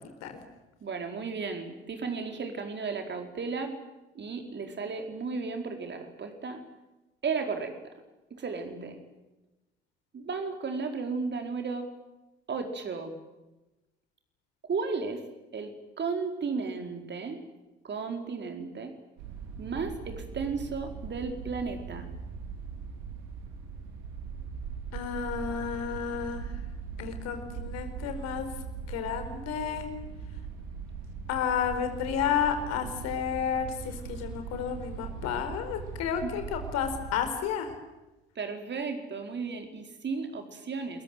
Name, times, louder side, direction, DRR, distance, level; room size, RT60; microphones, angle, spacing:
voice 1, 0.8-3.8 4.1-6.6 7.2-7.8 8.3-9.0 10.1-11.9 12.5-13.2 14.6-15.2 15.5-17.4 17.8-18.9 19.6-22.1 36.2-36.3 38.3-41.0, right 4 dB, 35° right, 5 dB, 4.7 m, -34 dB
sound 1, 19.2-37.2, right 6 dB, 65° right, 4.7 m, -40 dB
voice 2, 24.9-26.5 27.0-28.5 28.9-29.9 31.3-37.7, left 8 dB, 60° left, 7 dB, 4.7 m, -31 dB
30.0 x 22.5 x 7.8 m, 1.0 s
figure-of-eight pair, 55°, 30 cm